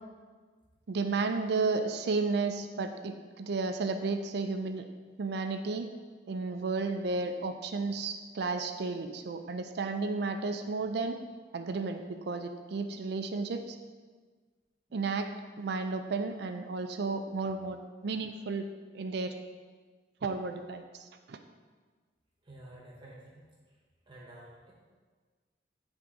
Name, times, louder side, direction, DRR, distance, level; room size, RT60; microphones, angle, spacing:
voice 1, 0.9-4.9 5.2-5.9 6.3-11.2 11.5-13.8 14.9-15.3 15.6-18.6 18.9-19.3 20.2-21.4, right 3 dB, 65° right, 7 dB, 0.4 m, -33 dB
voice 2, 14.9-15.2 22.4-23.8 24.1-24.7, right 1 dB, 30° right, -4 dB, 1.1 m, -52 dB
9.9 x 3.5 x 3.7 m, 1.5 s
head